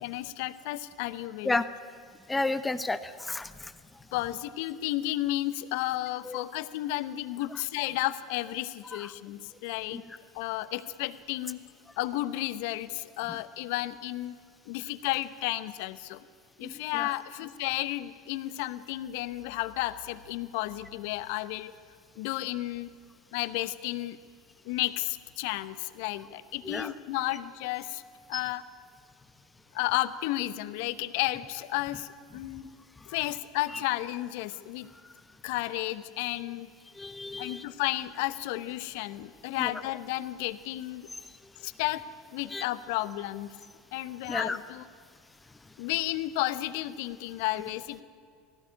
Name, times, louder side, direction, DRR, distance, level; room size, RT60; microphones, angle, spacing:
voice 1, 0.0-1.6 4.1-10.0 10.3-11.6 12.0-14.4 14.7-16.2 16.6-21.7 22.2-22.9 23.3-24.2 24.6-28.0 28.3-28.6 29.7-32.6 33.1-34.9 35.4-36.7 37.4-41.1 41.6-42.0 42.3-43.5 43.9-44.8 45.8-48.0, left 16 dB, 65° left, 15 dB, 0.9 m, -32 dB
voice 2, 2.3-3.7 6.3-6.4 9.9-10.0 13.3-13.4 16.6-17.1 26.6-26.9 28.3-28.4 37.0-37.6 39.6-39.7 42.5-42.6 44.3-44.6, left 2 dB, 15° left, 12 dB, 1.1 m, -32 dB
18.5 x 15.0 x 9.9 m, 2.2 s
hypercardioid pair, 85°, 0 cm